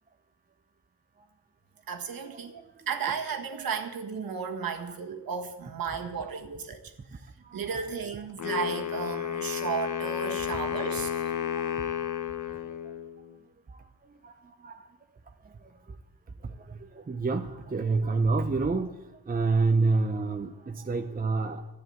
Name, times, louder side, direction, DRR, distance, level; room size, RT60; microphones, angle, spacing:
voice 1, 1.9-2.6 2.9-7.2 7.5-11.2, right 6 dB, 55° right, 4 dB, 1.6 m, -34 dB
Wind instrument woodwind instrument, 8.4-13.4, left 10 dB, 50° left, 1.1 m, -32 dB
voice 2, 11.6-11.9 12.8-12.9 13.7-13.8 14.2-14.9 15.4-15.5 16.4-18.9 19.3-21.7, right 3 dB, 20° right, 6 dB, 0.7 m, -28 dB
12.5 x 9.6 x 7.9 m, 1.0 s
cardioid pair, 105°, 40 cm